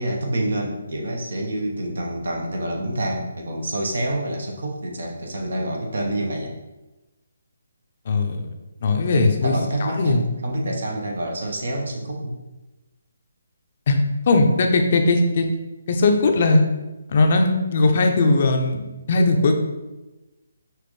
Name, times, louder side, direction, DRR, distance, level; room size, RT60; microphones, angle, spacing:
voice 1, 0.0-6.5 9.1-12.4, right 1 dB, 70° right, 1 dB, 1.0 m, -27 dB
voice 2, 8.1-8.4 8.8-10.2 13.9-15.5 15.9-16.6 17.1-19.5, left 2 dB, 45° left, 4 dB, 0.6 m, -19 dB
6.0 x 2.5 x 3.2 m, 1.1 s
hypercardioid pair, 155°, 0 cm